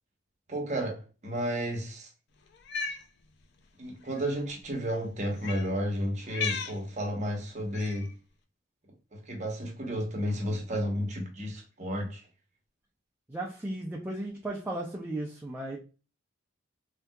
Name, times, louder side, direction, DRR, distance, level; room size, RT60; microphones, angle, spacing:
voice 1, 0.5-2.1 3.8-8.1 9.1-12.3, equal, 35° right, 0.8 m, -32 dB
Cat, 2.5-3.0 4.1-4.2 5.4-5.7 6.3-6.8 7.7-8.1, left 5 dB, 55° left, 0.4 m, -35 dB
voice 2, 13.3-15.8, right 1 dB, 10° right, 0.4 m, -35 dB
3.5 x 2.7 x 2.2 m
head